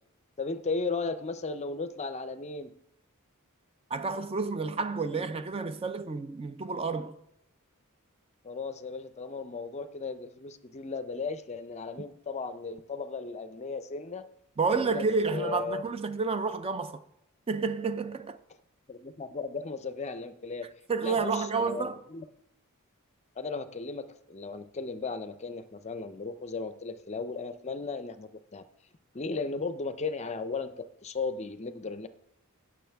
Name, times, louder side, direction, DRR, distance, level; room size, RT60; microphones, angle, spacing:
voice 1, 0.4-2.7 8.4-14.3 14.7-15.1 15.3-15.8 18.9-20.7 21.0-22.2 23.4-28.6 29.1-32.1, left 4 dB, 30° left, 0.5 m, -36 dB
voice 2, 3.9-7.2 14.6-17.0 17.5-18.4 20.9-22.0, right 4 dB, 25° right, 0.4 m, -30 dB
16.5 x 6.2 x 3.4 m
head